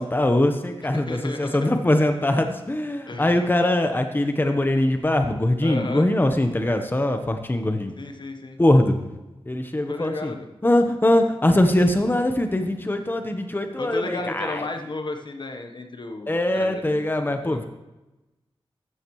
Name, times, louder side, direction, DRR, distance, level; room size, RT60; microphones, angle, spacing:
voice 1, 0.0-7.9 8.6-9.0 9.5-10.3 10.6-14.7 16.3-17.6, left 1 dB, 20° left, 6 dB, 1.1 m, -22 dB
voice 2, 0.9-1.7 3.1-3.4 5.6-6.1 8.0-8.6 9.9-10.5 13.8-17.6, left 2 dB, 50° left, 5 dB, 1.2 m, -34 dB
14.5 x 12.5 x 3.2 m, 1.0 s
wide cardioid pair, 80°, 10 cm